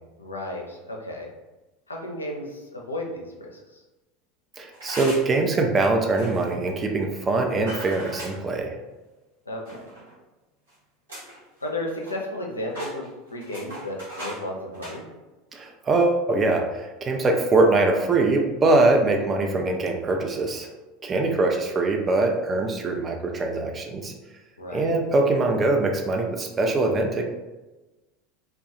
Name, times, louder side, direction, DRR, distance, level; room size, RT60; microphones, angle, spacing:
voice 1, 0.2-1.3 1.9-3.8 9.5-9.9 11.2-11.3 11.6-15.1 21.1-21.5 24.6-24.9, left 1 dB, 85° left, 0 dB, 0.4 m, -34 dB
voice 2, 4.6-8.7 15.5-20.7 21.0-24.1 24.7-27.2, right 2 dB, 25° right, 3 dB, 0.4 m, -23 dB
sound 1, 4.7-5.4 6.1-6.5 7.7-8.4 9.6-10.1 10.7-10.8 11.1-11.4 11.7-12.4 12.7-14.4 14.7-15.0, right 1 dB, 75° right, 1.0 m, -38 dB
2.2 x 2.2 x 2.7 m, 1.1 s
figure-of-eight pair, 75°, 0 cm